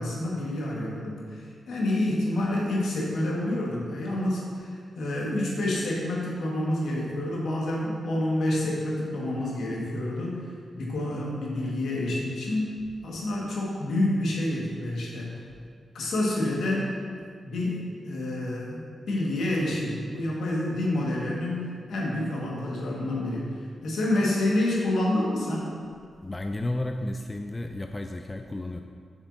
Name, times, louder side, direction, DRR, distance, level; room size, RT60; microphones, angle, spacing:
voice 1, 0.0-10.5 10.7-12.7 13.0-15.4 15.9-16.9 17.4-25.7, left 1 dB, 75° left, -4 dB, 1.6 m, -28 dB
voice 2, 26.2-28.8, left 1 dB, 25° left, 5 dB, 0.4 m, -32 dB
8.0 x 6.1 x 2.7 m, 2.1 s
supercardioid pair, 45°, 0 cm